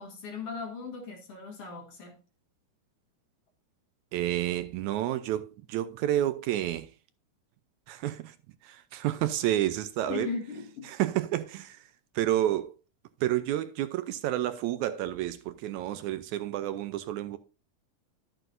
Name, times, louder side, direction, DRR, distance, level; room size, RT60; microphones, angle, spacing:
voice 1, 0.0-2.2 10.1-10.9, left 5 dB, 55° left, 2.0 m, -38 dB
voice 2, 4.1-6.9 7.9-8.4 8.6-10.3 11.0-11.8 12.2-12.7 13.2-17.4, right 13 dB, 80° right, 1.9 m, -30 dB
11.0 x 7.7 x 2.6 m
omnidirectional pair, 3.6 m